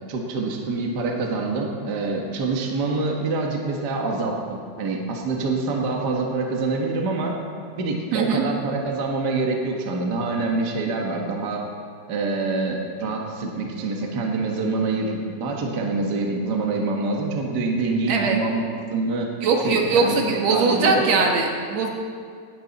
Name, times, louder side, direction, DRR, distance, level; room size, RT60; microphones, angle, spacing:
voice 1, 0.1-7.3 7.7-11.6 12.1-18.6 18.9-19.3 19.6-21.1, right 3 dB, 45° right, 0 dB, 1.5 m, -26 dB
voice 2, 8.1-8.4 18.1-18.4 19.4-21.9, right 4 dB, 65° right, 1 dB, 2.3 m, -21 dB
17.5 x 11.5 x 4.1 m, 2.2 s
omnidirectional pair, 3.5 m